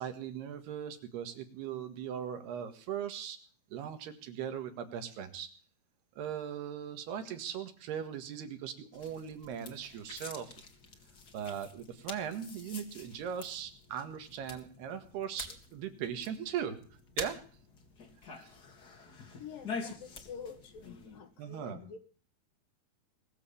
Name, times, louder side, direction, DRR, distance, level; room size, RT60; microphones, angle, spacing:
voice 1, 0.0-3.4 3.7-5.5 6.2-10.5 11.3-16.8 17.2-17.4 18.3-18.5 21.4-21.8, right 8 dB, 80° right, 8 dB, 3.7 m, -39 dB
sound 1, 8.9-21.2, left 4 dB, 35° left, 1.8 m, -47 dB
voice 2, 19.4-22.0, left 6 dB, 65° left, 8 dB, 3.0 m, -47 dB
21.0 x 7.5 x 8.5 m, 0.43 s
omnidirectional pair, 4.6 m